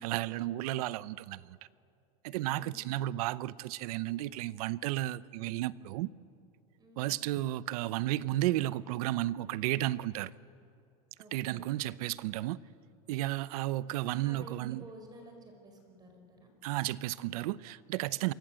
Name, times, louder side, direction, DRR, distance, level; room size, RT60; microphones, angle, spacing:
voice 1, 0.0-1.6 2.2-6.1 7.0-10.3 11.3-12.6 13.1-14.8 16.6-18.3, right 15 dB, 75° right, 0.7 m, -33 dB
voice 2, 2.4-3.1 6.8-7.2 11.2-11.7 14.0-16.5 18.1-18.3, right 1 dB, 20° right, 5.1 m, -53 dB
27.5 x 23.5 x 7.7 m
supercardioid pair, 140°, 20 cm